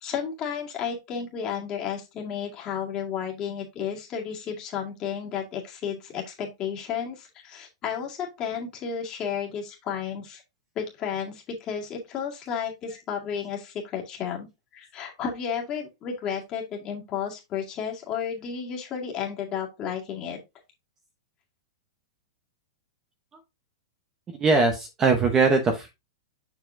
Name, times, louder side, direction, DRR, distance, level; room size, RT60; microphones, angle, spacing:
voice 1, 0.0-10.4 10.8-14.5 14.7-20.4, left 7 dB, 25° left, 0 dB, 2.0 m, -32 dB
voice 2, 24.4-25.9, right 4 dB, 15° right, 5 dB, 0.9 m, -21 dB
7.2 x 5.8 x 2.5 m, 0.23 s
supercardioid pair, 160°, 3 cm